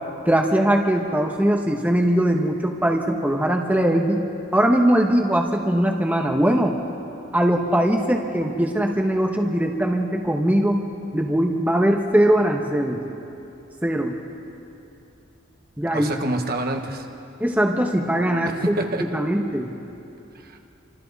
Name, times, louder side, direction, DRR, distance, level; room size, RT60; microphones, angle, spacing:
voice 1, 0.3-4.3 4.5-6.7 7.3-10.8 11.1-13.0 13.8-14.2 15.8-16.1 17.4-19.7, right 1 dB, 10° right, 1 dB, 1.1 m, -21 dB
voice 2, 15.9-17.1 18.4-19.1 20.3-20.6, right 2 dB, 50° right, 3 dB, 1.4 m, -27 dB
28.5 x 25.0 x 4.1 m, 2.8 s
head